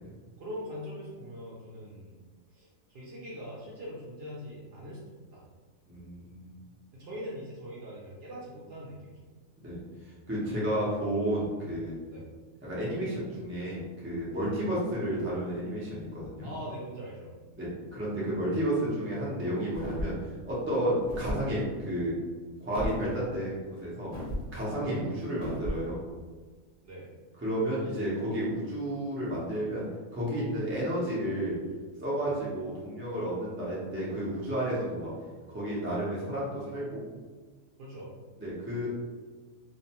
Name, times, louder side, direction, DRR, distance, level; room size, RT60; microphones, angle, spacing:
voice 1, 0.4-2.2 2.5-5.0 5.3-5.5 6.9-9.2 12.1-12.3 14.4-14.5 16.4-17.3 24.8-24.9 26.8-27.1 32.2-32.3 37.8-38.1, equal, 60° right, -6 dB, 0.7 m, -42 dB
voice 2, 5.9-6.6 9.6-9.8 10.3-12.0 12.6-16.5 17.6-20.1 20.4-22.1 22.6-24.1 24.5-26.0 27.4-29.9 30.1-31.6 32.0-35.1 35.5-37.0 38.4-38.9, right 1 dB, 20° right, -7 dB, 0.3 m, -31 dB
sound 1, 19.7-20.3 21.0-21.4 22.7-23.0 24.1-24.5 25.4-25.8, equal, 45° left, 0.9 m, -34 dB
2.5 x 2.2 x 2.8 m, 1.4 s
omnidirectional pair, 1.4 m